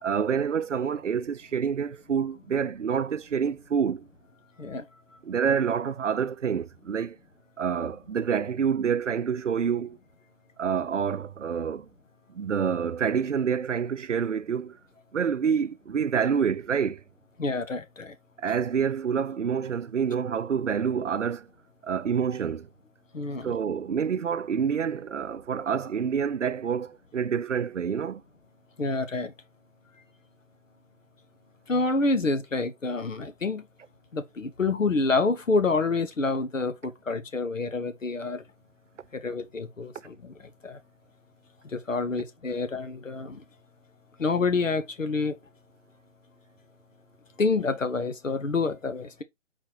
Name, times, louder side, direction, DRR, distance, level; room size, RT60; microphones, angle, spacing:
voice 1, 0.0-4.1 5.2-7.2 7.6-10.0 10.6-11.9 12.3-14.8 15.1-17.0 18.4-21.5 21.8-22.7 23.4-28.2, right 7 dB, 70° right, 0.6 m, -27 dB
voice 2, 17.4-18.1 23.1-23.5 28.8-29.3 31.7-33.6 34.1-38.4 39.2-40.3 40.6-40.8 41.7-43.4 44.2-45.3 47.4-49.2, left 3 dB, 80° left, 1.1 m, -27 dB
4.2 x 4.2 x 2.9 m
figure-of-eight pair, 150°, 38 cm